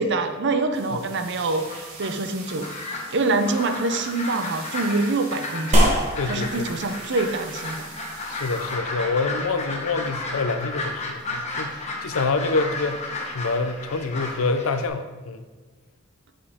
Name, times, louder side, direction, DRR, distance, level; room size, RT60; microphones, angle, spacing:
voice 1, 0.0-1.6 2.0-2.7 3.1-5.9 6.3-7.9, right 3 dB, 60° right, 8 dB, 0.7 m, -25 dB
sound 1, 0.7-8.7, right 4 dB, 80° right, 1.5 m, -43 dB
sound 2, 1.5-14.9, left 2 dB, 35° left, 1.1 m, -33 dB
sound 3, 5.7-14.5, equal, 35° right, 1.3 m, -29 dB
voice 2, 6.2-6.7 8.3-13.1 13.3-15.5, left 3 dB, 80° left, 9 dB, 0.6 m, -26 dB
7.3 x 6.5 x 3.6 m, 1.3 s
head